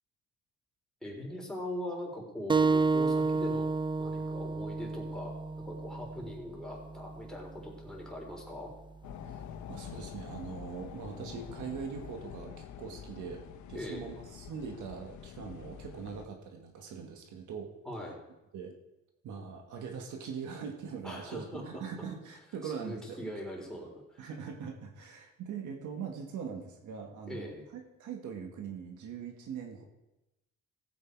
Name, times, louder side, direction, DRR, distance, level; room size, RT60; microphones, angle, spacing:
voice 1, 1.0-3.7 4.0-8.7 13.7-14.1 17.9-18.2 21.0-21.8 22.6-24.2 27.3-27.6, left 1 dB, ahead, -2 dB, 3.9 m, -41 dB
sound 1, 2.5-7.6, right 4 dB, 15° right, 0.5 m, -31 dB
sound 2, 9.0-16.3, left 9 dB, 70° left, 0.9 m, -46 dB
voice 2, 9.7-13.4 13.7-17.7 18.5-18.7 19.2-23.2 24.2-29.8, right 6 dB, 80° right, 3 dB, 1.8 m, -42 dB
15.5 x 8.2 x 4.7 m, 0.97 s
cardioid pair, 90°, 30 cm